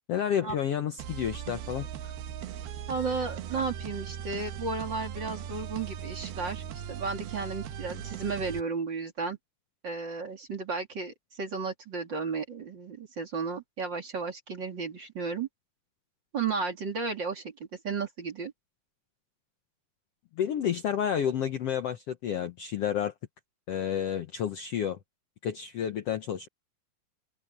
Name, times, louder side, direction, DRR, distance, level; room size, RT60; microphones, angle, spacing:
voice 1, 0.1-1.9 20.4-23.1 23.7-25.0 25.4-26.5, left 9 dB, 85° left, 1.3 m, -30 dB
sound 1, 1.0-8.6, right 9 dB, 85° right, 3.2 m, -39 dB
voice 2, 2.9-9.4 9.8-15.5 16.3-18.5, right 4 dB, 35° right, 2.8 m, -34 dB
omnidirectional pair, 4.3 m